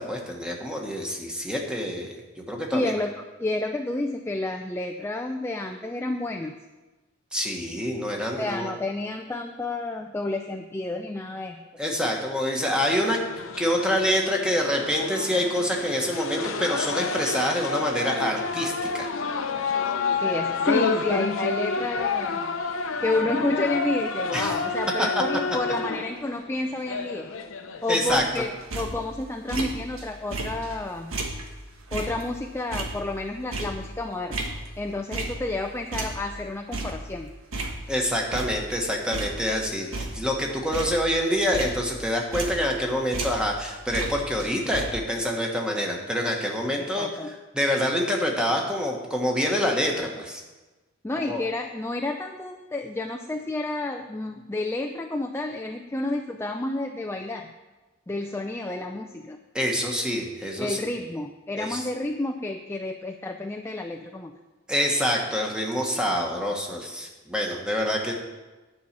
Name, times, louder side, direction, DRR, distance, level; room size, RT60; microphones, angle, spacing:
voice 1, 0.0-2.1 2.5-2.9 7.3-8.7 11.8-13.2 13.6-19.1 24.3-24.5 25.0-25.1 27.9-28.4 37.9-50.4 51.2-51.4 59.5-60.8 61.6-61.8 64.7-68.1, equal, 5° right, 0 dB, 1.4 m, -26 dB
voice 2, 2.7-6.5 8.4-11.6 20.2-22.5 23.0-27.3 27.8-31.1 31.9-34.4 34.8-37.3 46.9-47.3 51.0-57.5 58.1-59.4 60.6-64.4, left 2 dB, 10° left, 4 dB, 0.4 m, -30 dB
sound 1, 12.6-28.3, left 4 dB, 75° left, 0.8 m, -29 dB
sound 2, 28.1-30.0 30.3-35.6 35.9-38.0 38.3-38.8 39.1-42.8 43.1-44.8, right 2 dB, 90° right, 1.4 m, -34 dB
10.5 x 5.6 x 7.4 m, 1.2 s
head